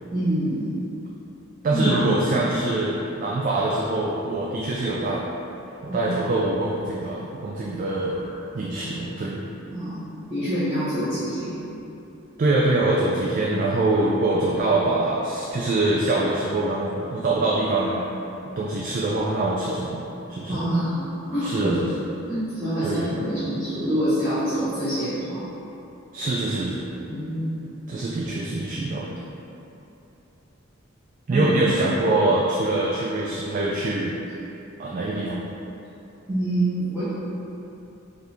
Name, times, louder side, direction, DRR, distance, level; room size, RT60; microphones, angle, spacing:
voice 1, 0.1-0.7 1.7-2.1 5.9-6.1 9.7-10.0 10.3-11.6 20.5-21.0 21.3-21.8 22.3-25.4 27.0-27.7 31.3-31.6 32.1-32.2 36.3-37.0, right 1 dB, 10° right, -17 dB, 1.0 m, -26 dB
voice 2, 1.6-5.2 5.8-8.2 8.5-9.4 12.4-18.0 18.6-20.0 20.3-20.6 21.4-21.9 22.8-23.2 26.1-26.8 27.9-29.2 31.3-34.1 34.8-35.4, right 2 dB, 40° right, -5 dB, 0.3 m, -24 dB
4.4 x 2.5 x 3.4 m, 2.9 s
head